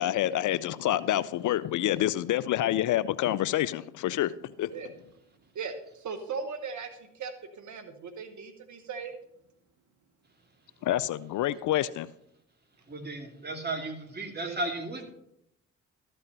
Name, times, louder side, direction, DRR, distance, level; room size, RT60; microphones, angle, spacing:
voice 1, 0.0-4.7 10.8-12.1, left 13 dB, 60° left, 0.5 m, -27 dB
voice 2, 5.5-9.1 14.4-14.6, right 5 dB, 55° right, 1.1 m, -38 dB
voice 3, 12.9-15.1, right 2 dB, 30° right, 2.6 m, -35 dB
13.5 x 5.5 x 5.4 m
hypercardioid pair, 45°, 35 cm